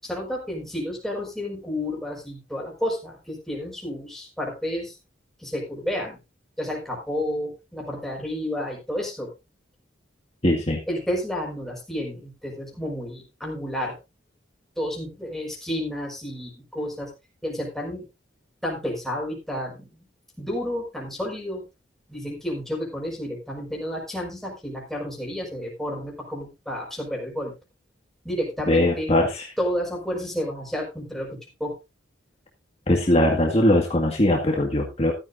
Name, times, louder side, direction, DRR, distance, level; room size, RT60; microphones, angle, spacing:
voice 1, 0.0-4.9 5.4-6.2 6.6-9.3 10.9-14.0 14.8-17.1 17.4-18.1 18.6-20.1 20.4-21.6 22.1-27.5 28.2-29.1 29.6-31.7, left 1 dB, ahead, -1 dB, 4.9 m, -31 dB
voice 2, 10.4-10.8 28.7-29.5 32.9-35.1, left 1 dB, 35° left, 0 dB, 1.8 m, -20 dB
14.5 x 12.0 x 2.6 m, 0.26 s
head